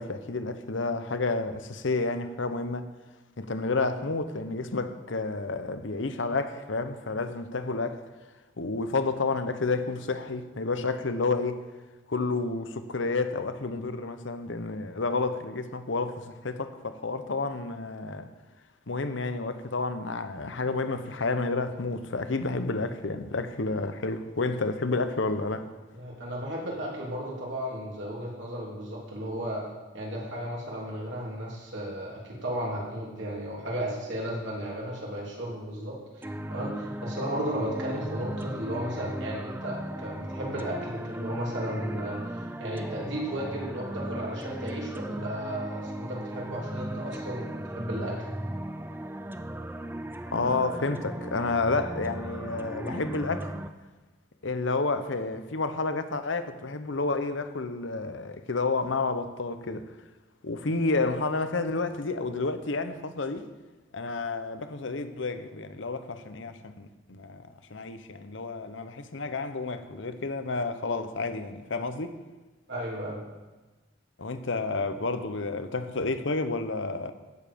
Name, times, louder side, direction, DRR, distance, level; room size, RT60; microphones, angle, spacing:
voice 1, 0.0-2.9 3.4-8.0 8.6-11.6 12.1-18.3 18.9-25.7 50.3-53.5 54.4-59.9 60.4-63.4 63.9-72.1 74.2-77.1, left 3 dB, 70° left, 0.9 m, -30 dB
voice 2, 25.9-29.6 29.9-36.2 36.5-48.3 72.7-73.2, equal, 65° right, 3.4 m, -34 dB
sound 1, 36.2-53.7, right 1 dB, 10° right, 0.4 m, -37 dB
16.0 x 7.2 x 5.2 m
head